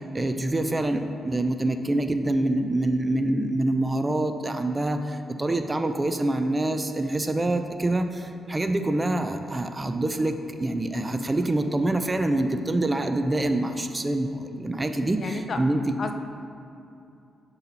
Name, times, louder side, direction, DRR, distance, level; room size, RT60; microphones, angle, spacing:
voice 1, 0.0-16.0, right 1 dB, 20° right, 7 dB, 0.4 m, -26 dB
voice 2, 15.2-15.6 16.0-16.1, left 4 dB, 50° left, 6 dB, 0.4 m, -31 dB
7.0 x 4.1 x 4.0 m, 2.7 s
cardioid pair, 90°, 0 cm